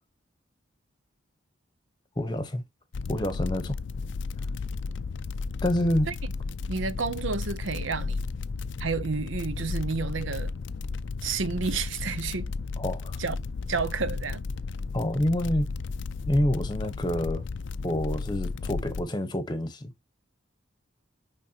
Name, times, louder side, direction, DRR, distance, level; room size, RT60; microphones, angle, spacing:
voice 1, 2.2-2.6 3.1-3.8 5.6-6.1 12.8-13.2 14.9-15.7 16.3-17.4 17.8-19.9, left 1 dB, 20° left, 1.0 m, -27 dB
sound 1, 2.9-19.0, left 4 dB, 65° left, 0.4 m, -34 dB
voice 2, 6.7-8.2 8.8-10.5 11.2-12.5 13.2-13.4 13.7-14.5, right 4 dB, 70° right, 0.8 m, -30 dB
9.4 x 3.7 x 2.8 m
head